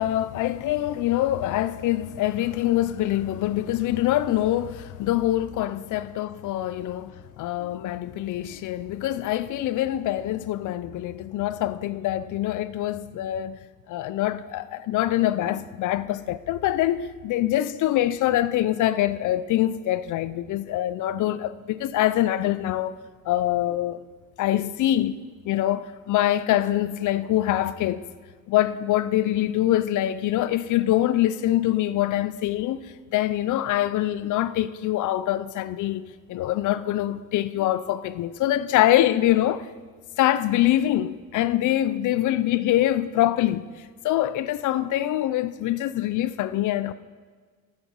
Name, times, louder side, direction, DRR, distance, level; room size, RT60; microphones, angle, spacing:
voice 1, 0.0-13.6 13.9-23.0 23.3-24.0 24.4-28.1 28.5-39.7 40.2-43.7 44.0-46.9, left 13 dB, 80° left, 0.6 m, -24 dB
13.5 x 8.7 x 5.4 m
cardioid pair, 90°, 30 cm